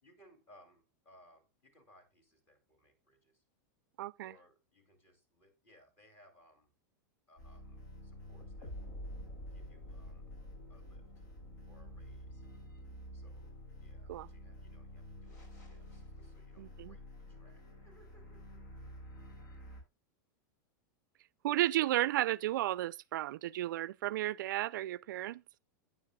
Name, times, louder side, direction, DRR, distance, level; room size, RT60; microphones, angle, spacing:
voice 1, 0.0-3.4 4.2-6.7 7.3-9.0 9.5-10.3 10.7-11.1 11.7-12.5 13.1-17.0 17.3-18.6, equal, 20° left, 2.7 m, -65 dB
voice 2, 4.0-4.3 14.1-14.3 16.6-16.9 21.4-25.4, right 14 dB, 70° right, 0.4 m, -33 dB
sound 1, 7.4-19.8, equal, 60° left, 5.7 m, -49 dB
12.5 x 9.5 x 2.3 m
supercardioid pair, 175°, 11 cm